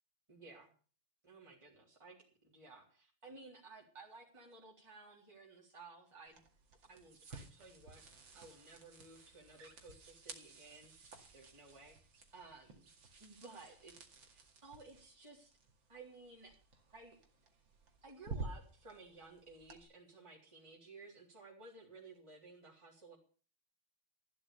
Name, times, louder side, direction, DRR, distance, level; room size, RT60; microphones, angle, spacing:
voice 1, 0.3-0.7 1.2-2.2 2.4-6.4 6.9-12.0 12.3-12.9 13.2-13.9 14.3-15.6 15.9-16.5 16.9-17.2 18.0-23.2, right 3 dB, 15° right, -4 dB, 3.7 m, -56 dB
sound 1, 6.3-19.8, right 3 dB, 60° right, 2.9 m, -53 dB
14.0 x 12.0 x 6.8 m, 0.40 s
omnidirectional pair, 2.3 m